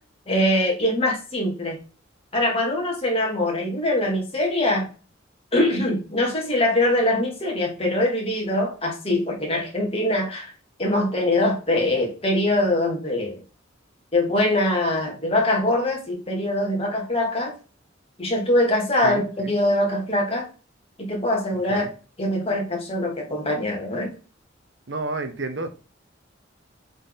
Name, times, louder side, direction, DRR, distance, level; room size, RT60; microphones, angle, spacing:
voice 1, 0.3-1.8 2.3-4.9 5.5-10.5 10.8-13.4 14.1-17.5 18.2-20.5 21.0-21.9 22.2-24.1, left 1 dB, 30° left, 2.9 m, -23 dB
voice 2, 24.9-25.7, right 2 dB, 70° right, 1.1 m, -30 dB
7.9 x 4.3 x 4.1 m
head